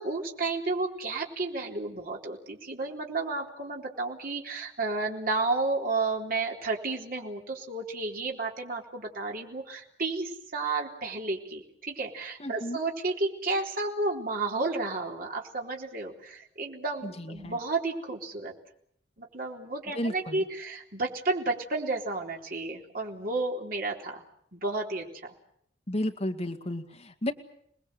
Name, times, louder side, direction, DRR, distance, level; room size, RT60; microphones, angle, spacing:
voice 1, 0.0-18.5 19.2-24.2 24.5-25.3, right 3 dB, 55° right, 0 dB, 4.0 m, -32 dB
voice 2, 12.4-12.8 17.0-17.6 19.9-20.4 25.9-27.3, left 1 dB, 35° left, 3 dB, 2.1 m, -33 dB
29.0 x 20.5 x 7.9 m, 0.70 s
head